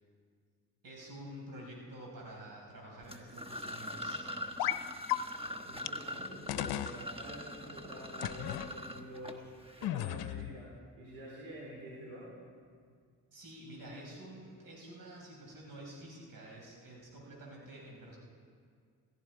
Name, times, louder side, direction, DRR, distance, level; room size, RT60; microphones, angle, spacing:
voice 1, 0.8-4.2 13.3-18.2, right 1 dB, 60° right, -2 dB, 5.6 m, -49 dB
sound 1, 3.0-9.9, left 1 dB, 15° right, 1.2 m, -43 dB
sound 2, 4.6-4.8 5.1-5.2 5.9-6.0 6.5-7.0 8.2-8.7 9.8-10.5, left 14 dB, 75° left, 0.7 m, -34 dB
voice 2, 5.4-12.3, equal, 85° right, -5 dB, 4.1 m, -48 dB
16.5 x 16.5 x 4.8 m, 2.1 s
supercardioid pair, 65°, 38 cm